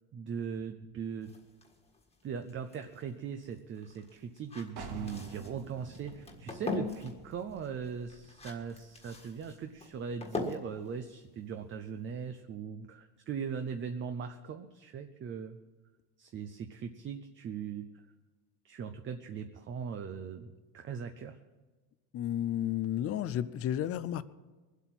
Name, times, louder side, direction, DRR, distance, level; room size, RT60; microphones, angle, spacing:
voice 1, 0.1-1.3 2.2-15.6 16.2-17.8 18.6-21.4, right 6 dB, 30° right, 7 dB, 0.6 m, -40 dB
sound 1, 1.2-12.1, left 3 dB, 15° left, 1.6 m, -43 dB
sound 2, 4.8-10.3, right 3 dB, 60° right, 2.3 m, -50 dB
voice 2, 22.1-24.2, left 11 dB, 35° left, 16 dB, 0.4 m, -32 dB
22.5 x 8.2 x 6.0 m, 1.3 s
cardioid pair, 160°, 45 cm